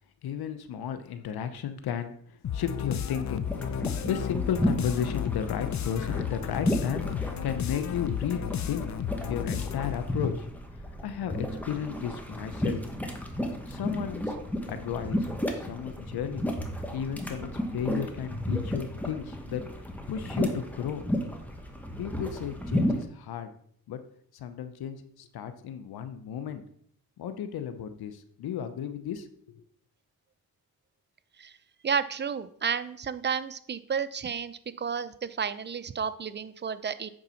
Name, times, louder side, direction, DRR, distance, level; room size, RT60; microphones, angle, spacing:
voice 1, 0.2-3.6 3.9-8.4 8.7-8.9 9.2-10.5 11.0-12.8 13.7-14.4 14.7-15.3 15.5-16.5 16.9-19.6 20.1-21.0 22.0-23.5 23.9-24.0 24.3-26.6 27.2-29.6, left 8 dB, 80° left, 10 dB, 0.8 m, -34 dB
sound 1, 2.4-10.1, left 9 dB, 50° left, 0.6 m, -33 dB
sound 2, 3.4-23.0, left 1 dB, 5° left, 1.5 m, -33 dB
voice 2, 31.8-37.1, right 6 dB, 30° right, 13 dB, 0.6 m, -32 dB
8.9 x 3.9 x 5.7 m, 0.62 s
cardioid pair, 75°, 37 cm